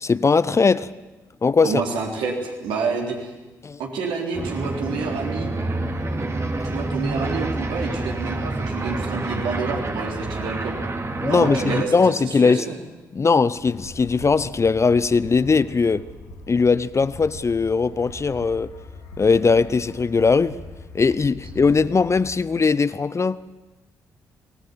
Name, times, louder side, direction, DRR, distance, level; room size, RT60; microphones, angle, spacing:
voice 1, 0.0-0.9 1.4-1.7 3.6-3.8 11.2-12.6 13.1-16.0 16.5-18.7 19.2-20.5 20.9-23.5, left 4 dB, 30° left, 0.7 m, -19 dB
voice 2, 1.6-3.3 3.8-5.5 6.7-10.9 11.2-12.7, right 4 dB, 65° right, 3.9 m, -28 dB
sound 1, 4.3-11.8, right 2 dB, 30° right, 2.4 m, -27 dB
sound 2, 13.5-22.3, left 2 dB, 80° left, 4.0 m, -41 dB
24.0 x 19.5 x 7.3 m
figure-of-eight pair, 40°, 9 cm